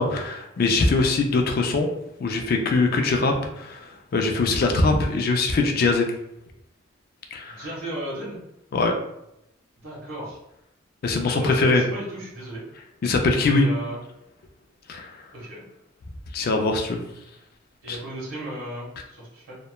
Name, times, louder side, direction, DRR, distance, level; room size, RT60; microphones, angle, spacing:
voice 1, 0.0-1.9 2.2-3.9 4.1-6.1 7.3-7.6 8.7-8.9 11.0-11.8 13.0-13.7 14.9-15.1 16.3-17.0 17.9-18.0, left 3 dB, 45° left, 3 dB, 0.3 m, -22 dB
voice 2, 7.5-8.4 9.8-10.4 11.4-12.6 13.4-14.0 15.3-15.6 17.8-19.6, right 1 dB, 90° right, -5 dB, 1.4 m, -35 dB
2.9 x 2.1 x 2.2 m, 0.83 s
head